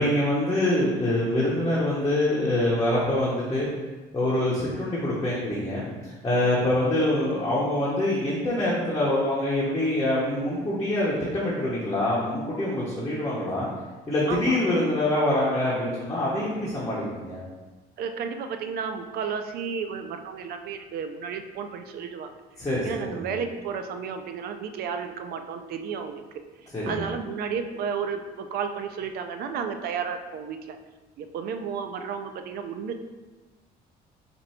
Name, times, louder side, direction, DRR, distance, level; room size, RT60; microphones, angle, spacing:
voice 1, 0.0-3.7 4.1-13.7 14.1-17.4 22.6-23.3 26.7-27.0, left 1 dB, 20° left, -7 dB, 0.9 m, -25 dB
voice 2, 14.3-14.6 18.0-22.3 22.8-26.2 26.6-30.8 31.2-33.0, right 6 dB, 65° right, 7 dB, 0.5 m, -32 dB
4.4 x 2.6 x 4.2 m, 1.2 s
cardioid pair, 110°, 17 cm